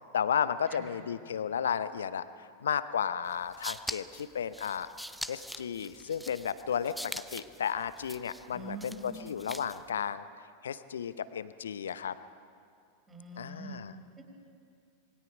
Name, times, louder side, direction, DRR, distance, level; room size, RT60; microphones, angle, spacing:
voice 1, 0.1-4.9 5.3-10.2 10.6-12.2 13.4-13.9, left 8 dB, 65° left, 14 dB, 0.8 m, -33 dB
sound 1, 3.3-9.9, equal, ahead, 0.6 m, -43 dB
voice 2, 8.5-9.1 13.1-13.8 14.2-14.3, right 2 dB, 15° right, 0 dB, 4.9 m, -44 dB
26.5 x 21.0 x 5.2 m, 2.3 s
figure-of-eight pair, 90°, 0 cm